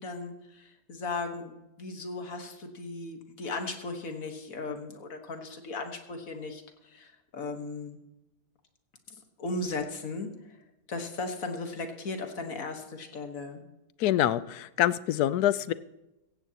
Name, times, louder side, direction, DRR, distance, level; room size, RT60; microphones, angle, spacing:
voice 1, 0.0-8.0 9.1-10.6 10.9-13.6, left 3 dB, 65° left, 5 dB, 1.9 m, -37 dB
voice 2, 14.0-15.7, left 13 dB, 85° left, 16 dB, 1.1 m, -25 dB
16.0 x 15.5 x 2.9 m, 0.95 s
omnidirectional pair, 1.6 m